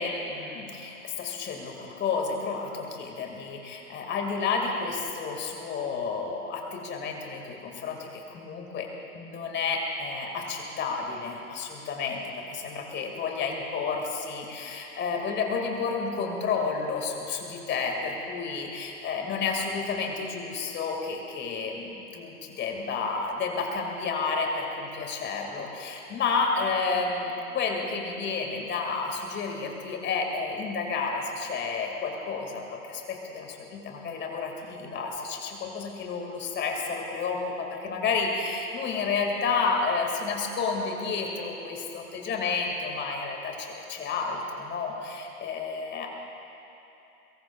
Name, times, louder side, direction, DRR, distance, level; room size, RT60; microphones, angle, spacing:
voice 1, 0.0-8.9 9.1-46.1, left 4 dB, 25° left, 1 dB, 2.3 m, -31 dB
23.0 x 22.5 x 2.5 m, 3.0 s
figure-of-eight pair, 95°, 44 cm